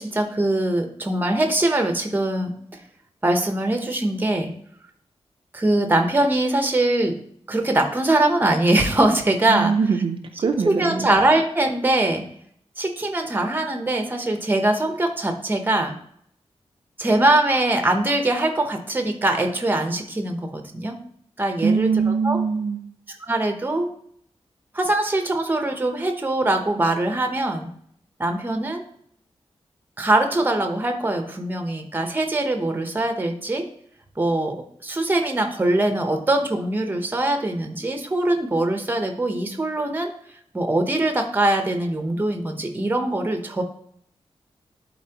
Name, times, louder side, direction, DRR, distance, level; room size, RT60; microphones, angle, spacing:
voice 1, 0.0-2.5 3.2-4.5 5.5-7.2 7.5-9.8 10.7-12.2 12.8-15.9 17.0-21.0 21.4-22.4 23.1-23.9 24.7-27.7 28.2-28.8 30.0-33.7 34.2-40.1 40.5-43.6, right 1 dB, 20° right, 5 dB, 0.9 m, -22 dB
voice 2, 9.5-11.1 21.6-22.8, right 5 dB, 55° right, 4 dB, 0.6 m, -22 dB
11.0 x 4.2 x 2.9 m, 0.66 s
wide cardioid pair, 170°, 11 cm